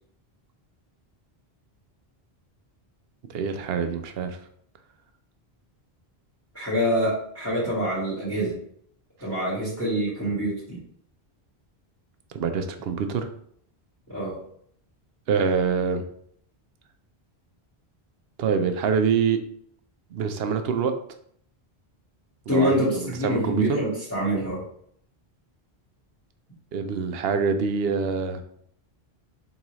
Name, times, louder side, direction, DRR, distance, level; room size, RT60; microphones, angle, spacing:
voice 1, 3.3-4.4 12.3-13.3 15.3-16.0 18.4-19.4 20.1-20.9 22.5-23.8 26.7-28.4, right 6 dB, 70° right, 8 dB, 0.8 m, -25 dB
voice 2, 6.5-8.6 9.2-10.8 14.1-14.3 22.5-24.6, equal, 15° left, -7 dB, 1.6 m, -25 dB
4.0 x 3.6 x 3.0 m, 0.65 s
omnidirectional pair, 1.1 m